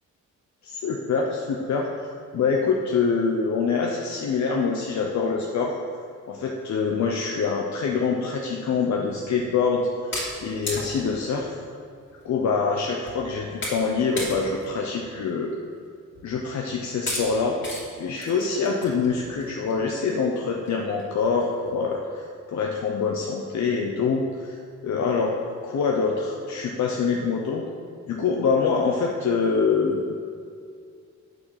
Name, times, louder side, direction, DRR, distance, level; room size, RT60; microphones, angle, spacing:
voice 1, 0.6-1.9 2.3-5.7 6.3-9.9 10.4-11.5 12.2-15.5 16.2-17.6 18.0-24.6 24.8-27.7 28.1-30.1, left 5 dB, 70° left, 0 dB, 0.8 m, -25 dB
sound 1, 10.1-11.2 12.1-12.2 12.5-12.6 13.1-13.3 13.6-13.9 14.2-14.7 15.1-15.2 16.2-16.3 17.1-17.3 17.6-17.8 18.2-19.7 20.2-20.3 20.7-20.8 21.0-21.1 21.4-21.7, left 1 dB, 40° left, 2.7 m, -33 dB
9.0 x 7.3 x 5.8 m, 2.3 s
wide cardioid pair, 150°, 29 cm